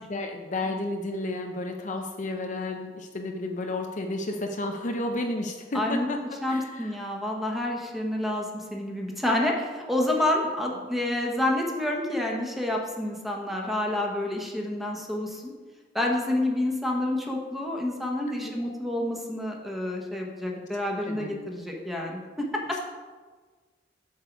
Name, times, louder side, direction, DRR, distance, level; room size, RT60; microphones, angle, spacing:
voice 1, 0.0-6.2 6.5-6.9 18.4-18.5 21.1-21.4, left 2 dB, 45° left, 3 dB, 0.7 m, -32 dB
voice 2, 5.7-6.1 6.4-15.5 15.9-22.9, left 1 dB, ahead, 0 dB, 1.2 m, -28 dB
7.9 x 6.5 x 4.6 m, 1.4 s
head